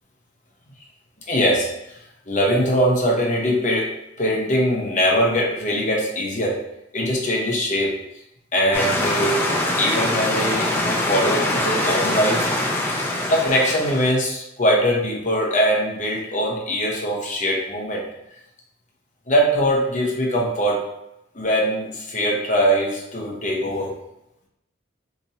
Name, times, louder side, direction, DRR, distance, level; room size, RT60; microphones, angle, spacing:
voice 1, 1.3-2.0 2.3-3.9 4.2-6.6 6.9-8.0 8.5-9.4 9.8-12.5 13.3-18.0 19.3-20.9 21.3-23.9, equal, 35° left, -2 dB, 0.8 m, -21 dB
sound 1, 8.7-14.1, left 1 dB, 10° left, 0.3 m, -23 dB
2.9 x 2.6 x 4.0 m, 0.87 s
head